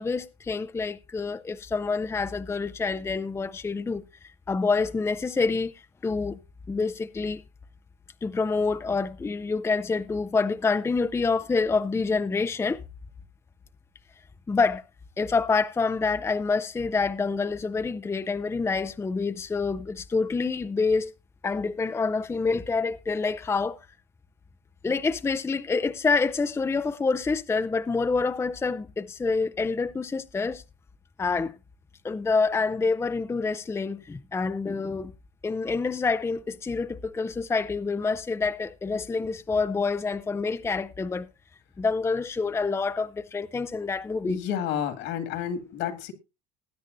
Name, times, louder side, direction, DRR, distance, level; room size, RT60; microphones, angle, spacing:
voice 1, 0.0-5.7 6.0-6.4 6.7-7.4 8.2-12.8 14.5-14.8 15.2-21.1 21.4-23.8 24.8-30.6 31.2-31.5 32.0-35.1 35.4-41.3 41.8-44.4, left 4 dB, 15° left, 0.5 m, -27 dB
voice 2, 44.2-46.1, left 9 dB, 65° left, 2.3 m, -30 dB
20.0 x 8.8 x 2.6 m
supercardioid pair, 100°, 20 cm